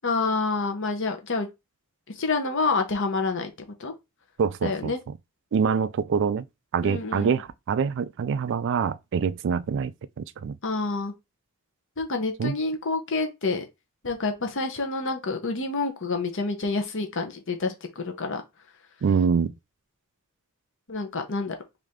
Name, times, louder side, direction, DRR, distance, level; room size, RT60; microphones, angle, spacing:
voice 1, 0.0-1.5 2.2-3.5 3.8-3.9 4.6-5.0 6.8-7.3 10.6-11.1 12.0-13.6 14.0-18.4 20.9-21.5, left 3 dB, 60° left, 1.0 m, -28 dB
voice 2, 4.4-4.9 5.5-6.5 6.7-10.6 12.4-12.5 19.0-19.5, right 6 dB, 55° right, 0.3 m, -25 dB
4.8 x 2.7 x 3.6 m
head